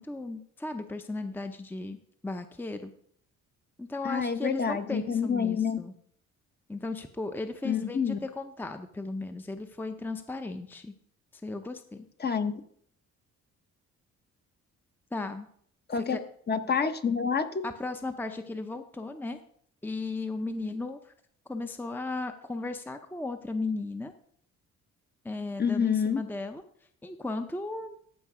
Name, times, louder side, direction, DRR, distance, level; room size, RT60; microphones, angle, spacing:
voice 1, 0.0-2.0 2.2-2.9 3.8-5.9 6.7-10.9 11.3-12.0 15.1-15.5 15.9-16.2 17.6-19.4 19.8-21.1 21.5-24.1 25.2-26.6 27.0-28.0, left 2 dB, 5° left, 7 dB, 0.7 m, -36 dB
voice 2, 4.0-5.8 7.6-8.2 12.2-12.6 15.9-16.2 16.5-17.6 25.6-26.2, left 6 dB, 35° left, 9 dB, 1.0 m, -27 dB
14.0 x 5.3 x 4.9 m, 0.64 s
cardioid pair, 90°, 30 cm